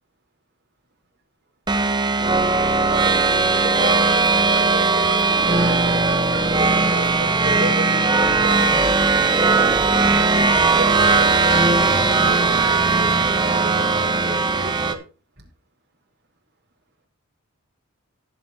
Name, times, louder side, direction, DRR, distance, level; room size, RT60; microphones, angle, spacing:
sound 1, 1.7-14.9, right 3 dB, 20° right, 1.1 m, -18 dB
voice 1, 2.8-8.9 9.4-9.8 10.2-13.1 13.4-15.1 15.4-15.5, right 2 dB, 55° right, 1 dB, 4.3 m, -32 dB
18.0 x 6.7 x 2.9 m, 0.34 s
head